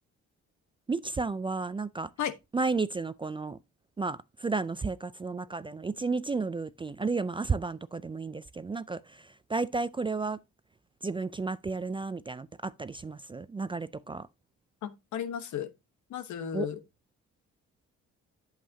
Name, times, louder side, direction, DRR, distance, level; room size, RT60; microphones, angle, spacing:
voice 1, 0.9-2.1 2.5-3.6 4.0-10.4 11.0-14.3 16.5-16.7, right 4 dB, 15° right, 0.3 m, -32 dB
voice 2, 14.8-15.7 16.1-16.8, left 9 dB, 70° left, 1.1 m, -34 dB
8.4 x 7.5 x 2.7 m
cardioid pair, 90°, 30 cm